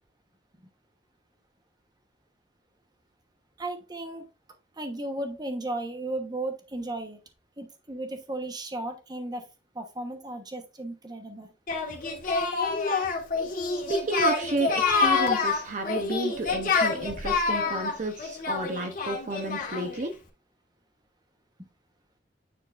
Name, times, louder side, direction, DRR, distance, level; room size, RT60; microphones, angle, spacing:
voice 1, 3.6-4.3 4.8-7.2 7.6-9.5 9.7-11.5, right 2 dB, 25° right, 6 dB, 1.0 m, -35 dB
Singing, 11.7-20.0, left 4 dB, 50° left, 1.7 m, -27 dB
voice 2, 13.9-14.7 15.0-20.1, right 2 dB, 45° right, 5 dB, 0.7 m, -31 dB
9.3 x 4.6 x 2.5 m, 0.30 s
head